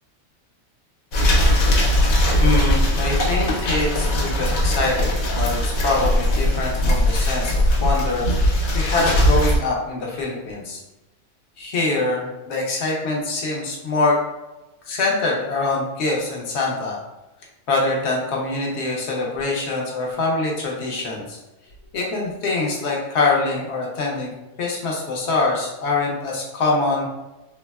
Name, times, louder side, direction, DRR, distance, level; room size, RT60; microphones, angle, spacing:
sound 1, 1.1-9.6, left 1 dB, 75° left, 1.1 m, -19 dB
voice 1, 2.4-10.8 11.6-14.2 14.8-17.0 17.7-21.4 21.9-27.1, left 3 dB, 60° left, -2 dB, 0.8 m, -24 dB
3.4 x 2.1 x 2.2 m, 1.0 s
omnidirectional pair, 1.5 m